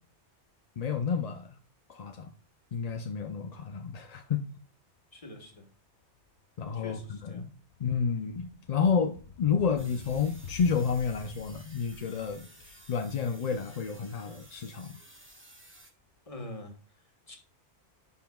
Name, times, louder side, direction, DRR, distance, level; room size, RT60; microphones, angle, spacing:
voice 1, 0.8-1.6 1.9-2.3 2.7-4.5 6.6-7.5 7.8-15.0, left 6 dB, 45° left, 0.5 m, -30 dB
voice 2, 5.1-5.7 6.7-7.4 16.3-16.8 17.3-17.4, left 2 dB, 30° left, 1.5 m, -44 dB
sound 1, 6.2-6.4 6.7-15.6, left 5 dB, 70° left, 1.1 m, -49 dB
sound 2, 9.8-15.9, right 1 dB, 10° right, 1.0 m, -54 dB
10.0 x 5.6 x 2.3 m
omnidirectional pair, 1.2 m